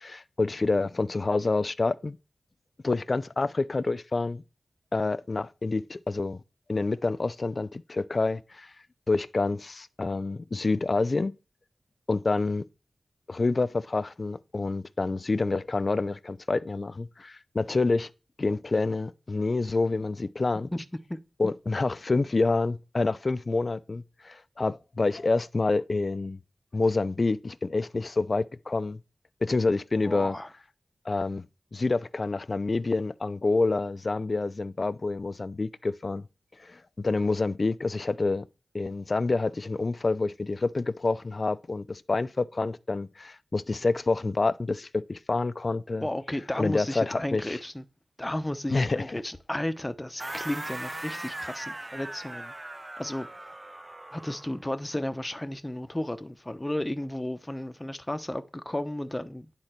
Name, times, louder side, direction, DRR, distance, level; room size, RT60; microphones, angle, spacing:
voice 1, 0.0-2.2 2.8-4.4 4.9-6.4 6.7-8.7 9.1-11.3 12.1-12.6 13.3-18.1 18.4-20.7 21.4-26.4 26.7-29.0 29.4-30.3 31.1-31.4 31.7-36.2 36.6-38.4 38.7-46.1 46.6-47.6 48.7-49.2, left 3 dB, 45° left, 0.5 m, -27 dB
voice 2, 30.0-30.5 46.0-47.8 48.2-52.5 53.0-53.3 54.1-59.5, left 1 dB, 15° left, 0.7 m, -33 dB
sound 1, 50.2-54.6, right 1 dB, 25° right, 0.5 m, -39 dB
9.8 x 3.8 x 4.4 m
cardioid pair, 60°, 0 cm